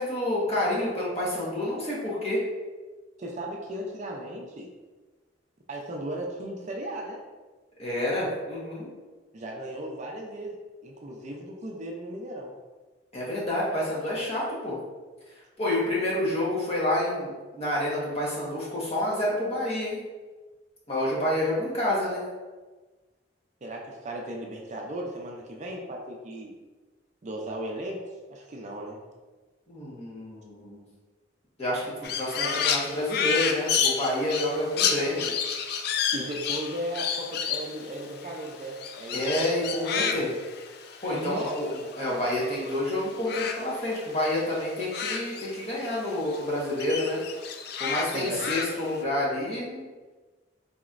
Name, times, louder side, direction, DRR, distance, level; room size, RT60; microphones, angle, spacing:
voice 1, 0.0-2.4 7.8-8.9 13.1-14.8 15.6-20.0 20.9-22.2 29.7-30.8 31.6-35.3 39.1-40.3 41.0-41.7 42.0-47.2 47.8-49.9, left 1 dB, 35° left, -6 dB, 1.1 m, -28 dB
voice 2, 3.2-4.7 5.7-7.2 9.3-10.6 10.8-12.5 23.6-26.5 27.2-28.0 28.3-29.0 36.1-39.2 39.9-40.2 41.1-41.5 48.1-48.4, right 1 dB, 40° right, 0 dB, 0.4 m, -36 dB
Crow, 32.0-42.7 43.0-46.0 46.3-49.0, left 7 dB, 60° left, 0.3 m, -31 dB
4.2 x 2.9 x 2.5 m, 1.3 s
head